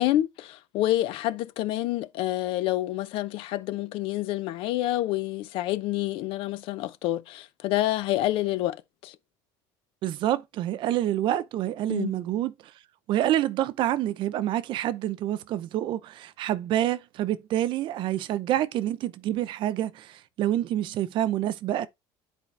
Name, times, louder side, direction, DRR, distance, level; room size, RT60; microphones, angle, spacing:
voice 1, 0.0-8.8 9.0-9.2 11.9-12.1, left 15 dB, 65° left, 0.7 m, -28 dB
voice 2, 10.0-12.5 13.1-21.9, right 12 dB, 55° right, 0.7 m, -27 dB
10.5 x 4.4 x 3.3 m
cardioid pair, 115°, 10 cm